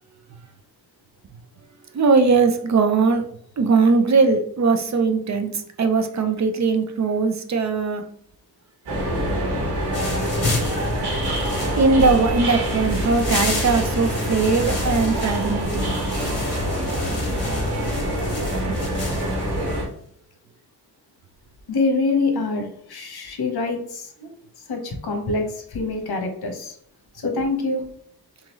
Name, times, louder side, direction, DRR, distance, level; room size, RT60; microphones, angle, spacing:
voice 1, 1.9-3.2 3.6-8.0 11.8-16.0 18.7-18.8, right 4 dB, 45° right, 6 dB, 0.6 m, -20 dB
sound 1, 8.9-19.9, equal, 85° right, 1.3 m, -25 dB
sound 2, 9.9-19.8, left 2 dB, 60° left, 1.7 m, -33 dB
voice 2, 21.7-24.3 24.7-26.8 27.1-27.8, left 3 dB, 80° left, 4 dB, 1.1 m, -25 dB
3.8 x 3.6 x 3.0 m, 0.63 s
wide cardioid pair, 155°, 38 cm